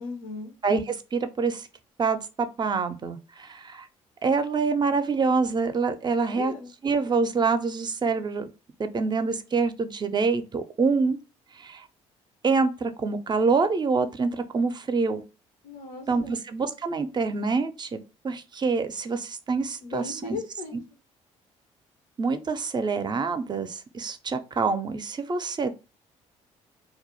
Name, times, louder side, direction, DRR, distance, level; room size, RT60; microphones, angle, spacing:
voice 1, 0.0-0.5 6.1-6.7 15.6-16.4 19.8-20.8, left 4 dB, 80° left, 0.5 m, -37 dB
voice 2, 0.6-1.7 2.0-3.9 4.2-6.5 6.8-8.5 8.8-11.2 11.5-11.8 12.4-15.2 16.1-18.0 18.2-20.4 22.2-25.8, right 4 dB, 30° right, 0.4 m, -26 dB
2.2 x 2.0 x 2.9 m
hypercardioid pair, 50°, 16 cm